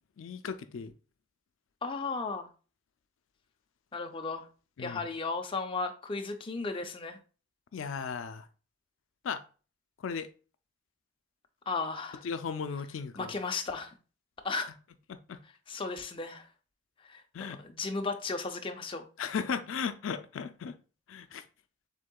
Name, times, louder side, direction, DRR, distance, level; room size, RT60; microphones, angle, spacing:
voice 1, 0.2-0.9 4.8-5.0 7.7-8.5 9.2-9.4 10.0-10.3 12.2-13.3 15.1-15.4 17.3-17.6 19.2-20.8 21.1-21.4, left 6 dB, 90° left, 0.4 m, -36 dB
voice 2, 1.8-2.5 3.9-4.5 4.8-7.2 11.7-12.2 13.2-13.9 14.4-14.7 15.7-16.5 17.0-17.2 17.6-19.0, left 3 dB, 25° left, 0.5 m, -35 dB
6.4 x 3.6 x 2.3 m
head